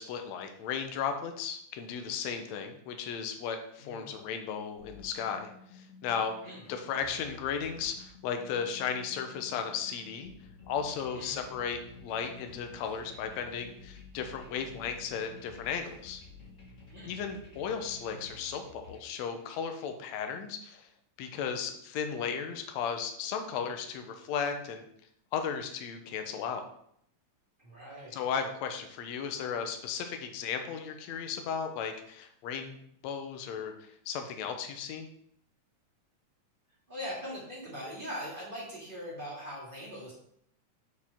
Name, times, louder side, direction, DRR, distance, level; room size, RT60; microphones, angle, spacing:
voice 1, 0.0-6.3 6.7-10.3 10.7-16.2 17.0-20.9 21.2-24.8 25.3-26.6 28.1-32.8 33.0-35.1, left 7 dB, 75° left, 5 dB, 1.9 m, -35 dB
sound 1, 4.8-19.7, left 3 dB, 35° left, 1.5 m, -52 dB
voice 2, 11.1-11.5 16.9-17.1 27.6-28.2 36.9-40.1, equal, 20° right, -6 dB, 1.9 m, -41 dB
8.9 x 4.8 x 3.6 m, 0.70 s
omnidirectional pair, 3.4 m